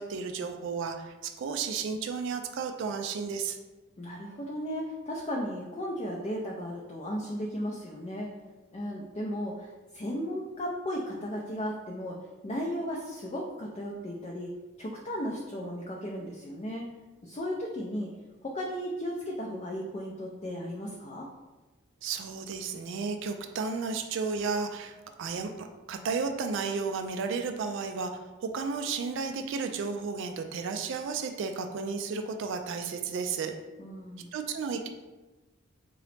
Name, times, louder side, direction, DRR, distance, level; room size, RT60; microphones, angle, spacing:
voice 1, 0.0-3.6 22.0-33.5 34.3-34.9, right 5 dB, 60° right, 6 dB, 0.3 m, -33 dB
voice 2, 4.0-8.3 8.7-9.7 9.9-12.2 12.4-14.5 14.8-16.9 17.2-18.1 18.4-21.3 33.8-34.3, equal, 30° left, -2 dB, 0.4 m, -35 dB
3.8 x 3.0 x 3.2 m, 1.2 s
head